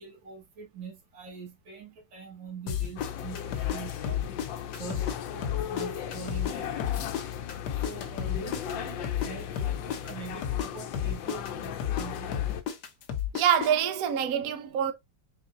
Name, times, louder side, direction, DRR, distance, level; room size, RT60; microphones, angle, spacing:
voice 1, 0.0-4.2 4.7-7.1 7.8-12.4, right 5 dB, 90° right, 2.2 m, -44 dB
sound 1, 2.7-5.2 5.4-9.3 9.6-13.7, left 9 dB, 70° left, 1.3 m, -31 dB
sound 2, 3.0-12.6, left 9 dB, 90° left, 1.4 m, -37 dB
voice 2, 13.3-14.9, right 9 dB, 65° right, 0.9 m, -25 dB
4.5 x 3.8 x 2.5 m
omnidirectional pair, 2.0 m